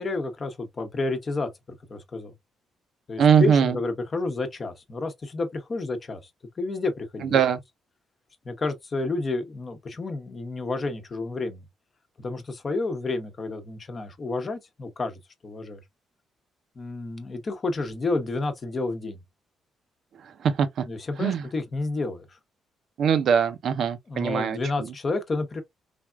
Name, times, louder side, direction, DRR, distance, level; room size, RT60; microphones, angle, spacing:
voice 1, 0.0-2.3 3.1-6.2 6.6-7.4 8.4-11.6 12.2-15.8 16.8-19.2 20.8-22.4 24.1-25.6, left 3 dB, 35° left, 0.8 m, -30 dB
voice 2, 3.2-3.8 7.2-7.6 20.2-20.8 21.2-21.4 23.0-24.9, right 7 dB, 65° right, 0.5 m, -22 dB
3.4 x 2.4 x 2.2 m
cardioid pair, 90°, 0 cm